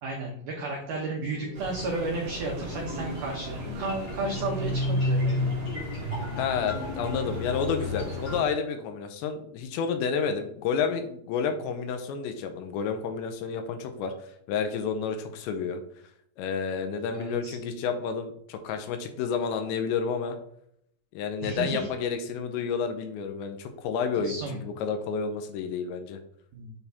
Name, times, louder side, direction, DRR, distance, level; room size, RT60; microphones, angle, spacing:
voice 1, 0.0-5.5 17.1-17.6 21.4-21.9 24.2-24.6 26.5-26.7, right 2 dB, 80° right, -1 dB, 1.8 m, -33 dB
sound 1, 1.3-8.4, left 2 dB, 30° left, 2.2 m, -32 dB
sound 2, 1.5-8.4, right 3 dB, 45° right, 2.2 m, -40 dB
voice 2, 6.4-14.1 14.5-15.8 16.4-20.4 21.1-26.2, left 6 dB, 80° left, 6 dB, 2.9 m, -30 dB
8.1 x 4.1 x 3.5 m, 0.70 s
omnidirectional pair, 5.2 m